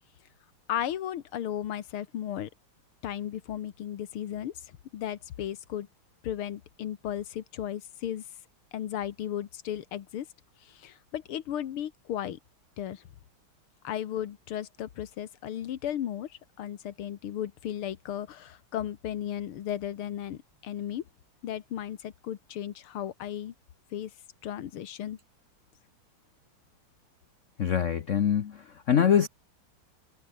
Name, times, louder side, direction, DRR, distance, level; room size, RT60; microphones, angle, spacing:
voice 1, 0.7-2.5 3.0-4.5 4.9-5.9 6.2-8.2 8.7-10.3 10.6-12.4 12.8-13.0 13.8-21.0 21.4-23.5 23.9-24.1 24.4-25.2, left 11 dB, 90° left, 2.1 m, -35 dB
voice 2, 27.6-29.3, left 8 dB, 55° left, 0.9 m, -24 dB
omnidirectional pair, 2.3 m